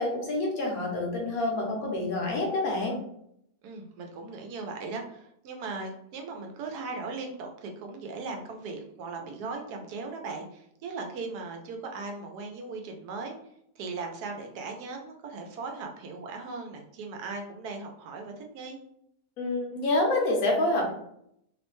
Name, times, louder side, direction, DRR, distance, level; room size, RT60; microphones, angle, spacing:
voice 1, 0.0-3.0 19.4-20.9, left 2 dB, 70° left, -1 dB, 1.2 m, -27 dB
voice 2, 3.6-13.4 13.8-18.8, right 3 dB, 90° right, 3 dB, 1.2 m, -38 dB
3.2 x 2.1 x 3.0 m, 0.73 s
omnidirectional pair, 1.6 m